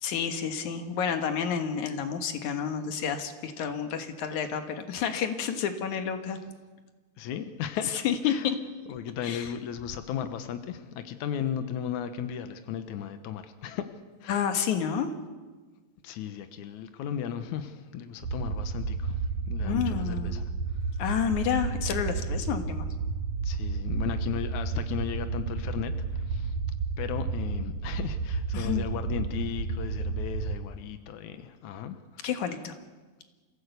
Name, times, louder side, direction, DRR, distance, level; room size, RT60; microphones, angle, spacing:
voice 1, 0.0-6.4 7.9-8.6 9.2-9.5 14.3-15.1 19.6-20.3 21.0-22.9 28.5-28.9 32.2-32.8, left 8 dB, 60° left, 7 dB, 2.3 m, -30 dB
voice 2, 7.2-8.5 8.9-13.8 14.2-14.4 16.0-19.2 19.5-20.4 23.4-26.5 27.0-32.3, left 9 dB, 80° left, 9 dB, 1.7 m, -35 dB
sound 1, 18.2-30.6, right 4 dB, 65° right, 1.9 m, -31 dB
27.0 x 16.5 x 8.1 m, 1.3 s
omnidirectional pair, 4.9 m